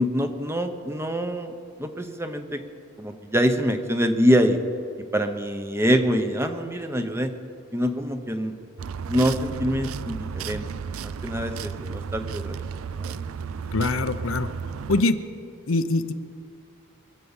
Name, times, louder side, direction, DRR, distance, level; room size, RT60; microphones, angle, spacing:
voice 1, 0.0-1.5 1.8-2.6 3.0-4.6 5.1-7.3 7.7-8.5 9.1-10.7 11.0-12.5 13.0-13.2, equal, 10° right, 7 dB, 0.8 m, -24 dB
sound 1, 8.8-15.0, right 6 dB, 80° right, 0.4 m, -33 dB
voice 2, 13.7-14.5 14.9-15.2 15.7-16.1, left 3 dB, 70° left, 10 dB, 0.7 m, -23 dB
23.0 x 8.3 x 7.2 m, 2.3 s
head